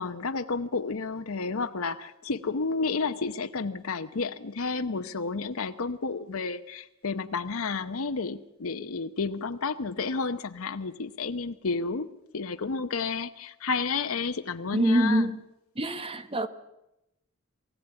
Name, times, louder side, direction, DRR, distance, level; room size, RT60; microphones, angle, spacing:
voice 1, 0.0-12.1 12.3-15.3, left 4 dB, 75° left, 0.8 m, -31 dB
voice 2, 14.7-15.3 15.8-16.5, right 1 dB, 25° right, 1.1 m, -24 dB
22.5 x 15.5 x 8.9 m
head